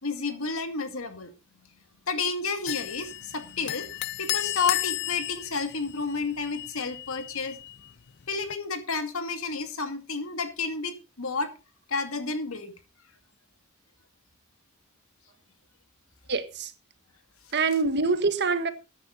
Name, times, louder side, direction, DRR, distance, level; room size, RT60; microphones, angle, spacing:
voice 1, 0.0-1.3 2.1-7.6 8.3-11.5 11.9-12.7, left 4 dB, 80° left, 2.3 m, -31 dB
sound 1, 2.7-8.5, left 15 dB, 55° left, 0.5 m, -34 dB
voice 2, 16.3-16.7 17.5-18.7, right 4 dB, 55° right, 1.4 m, -25 dB
13.5 x 9.8 x 4.0 m
head